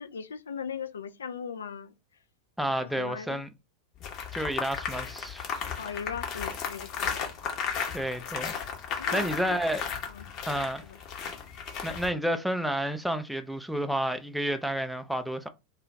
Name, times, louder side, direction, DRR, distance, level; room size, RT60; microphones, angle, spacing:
voice 1, 0.0-1.9 2.8-3.4 5.8-7.3 9.0-9.6 10.1-10.3 10.8-11.0, left 6 dB, 75° left, 0.3 m, -39 dB
voice 2, 2.6-3.5 4.3-5.5 7.9-8.6 8.9-9.8 10.5-10.9 11.8-15.5, right 1 dB, ahead, 0.3 m, -30 dB
sound 1, 4.0-12.1, left 6 dB, 40° left, 0.8 m, -35 dB
2.3 x 2.3 x 3.0 m
figure-of-eight pair, 90°, 0 cm